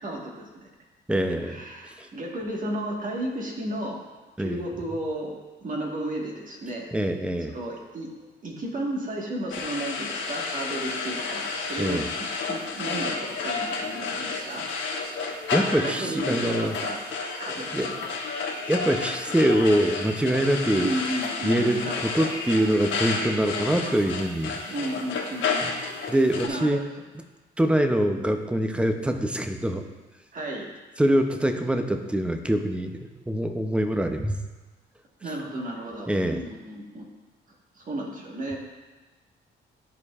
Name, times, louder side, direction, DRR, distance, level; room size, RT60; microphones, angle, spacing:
voice 1, 0.0-0.7 1.4-4.0 4.4-6.9 7.5-8.1 8.4-14.6 15.4-17.1 17.4-18.1 20.8-22.3 24.7-25.8 26.5-26.7 30.3-30.7 35.2-37.1 37.7-38.6, right 1 dB, 40° right, -1 dB, 1.5 m, -33 dB
voice 2, 1.1-1.6 2.0-2.1 4.4-4.6 6.9-7.6 11.8-12.1 15.5-16.7 17.7-17.9 18.7-20.9 21.4-24.6 25.6-25.7 26.1-26.8 27.6-29.8 31.0-34.4 36.1-36.4, right 1 dB, 5° right, 6 dB, 0.6 m, -24 dB
sound 1, 9.5-26.5, left 4 dB, 70° left, 1.1 m, -31 dB
12.5 x 4.5 x 2.4 m, 1.2 s
cardioid pair, 90°, 20 cm